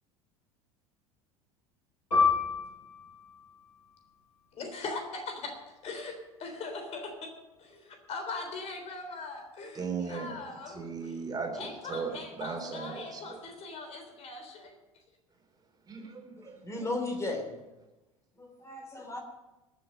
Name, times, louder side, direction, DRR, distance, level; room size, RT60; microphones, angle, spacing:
Piano, 2.1-7.1 7.5-7.6 8.4-8.8, left 5 dB, 75° left, 5.9 m, -32 dB
voice 1, 4.5-7.3 7.6-11.2 11.5-14.8, left 3 dB, 35° left, 5 dB, 3.6 m, -41 dB
voice 2, 9.7-10.3 10.7-13.4 15.9-16.6, right 5 dB, 20° right, 2 dB, 3.4 m, -37 dB
voice 3, 16.6-17.5 18.3-19.2, left 2 dB, 15° left, 2 dB, 3.0 m, -35 dB
21.0 x 7.7 x 5.4 m, 1.0 s
figure-of-eight pair, 70°, 18 cm